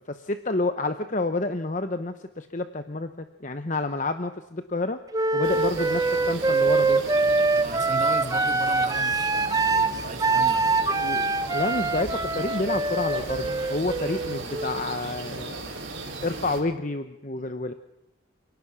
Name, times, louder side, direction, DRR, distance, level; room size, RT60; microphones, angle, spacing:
voice 1, 0.1-5.0 5.3-7.0 11.0-11.2 11.5-15.6 16.2-17.7, left 2 dB, 35° left, 9 dB, 0.9 m, -29 dB
Wind instrument woodwind instrument, 5.1-14.9, right 3 dB, 15° right, 0.9 m, -24 dB
sound 1, 5.4-16.6, right 2 dB, 65° right, 6.0 m, -37 dB
voice 2, 7.5-10.7 17.4-17.5, right 2 dB, 35° right, 7 dB, 1.7 m, -37 dB
28.5 x 18.0 x 6.2 m, 0.94 s
head